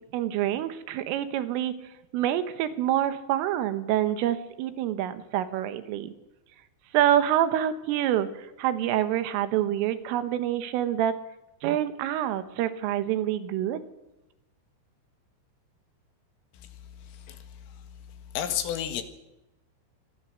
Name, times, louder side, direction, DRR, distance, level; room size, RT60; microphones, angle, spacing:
voice 1, 0.1-1.7 2.1-6.1 6.9-11.1 11.6-13.8, right 11 dB, 80° right, 11 dB, 3.8 m, -26 dB
voice 2, 17.0-17.5 18.4-19.0, left 10 dB, 85° left, 8 dB, 4.3 m, -31 dB
25.5 x 19.5 x 6.5 m, 0.97 s
omnidirectional pair, 5.8 m